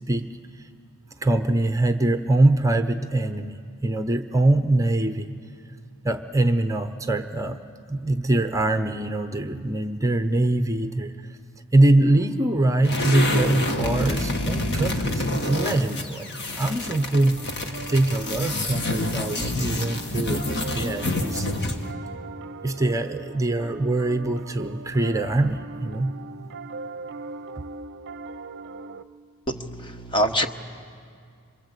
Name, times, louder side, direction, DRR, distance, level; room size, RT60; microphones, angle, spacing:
voice 1, 1.2-5.3 6.0-7.6 7.9-11.4 11.7-17.4 17.9-21.5 22.6-26.2 27.6-27.7, right 2 dB, 15° right, 8 dB, 0.8 m, -23 dB
sound 1, 12.8-21.9, left 2 dB, 50° left, 1.8 m, -28 dB
Piano, 16.6-29.0, right 3 dB, 50° right, 0.6 m, -40 dB
voice 2, 29.5-30.5, equal, 20° left, 7 dB, 1.1 m, -25 dB
27.5 x 26.0 x 8.2 m, 2.3 s
head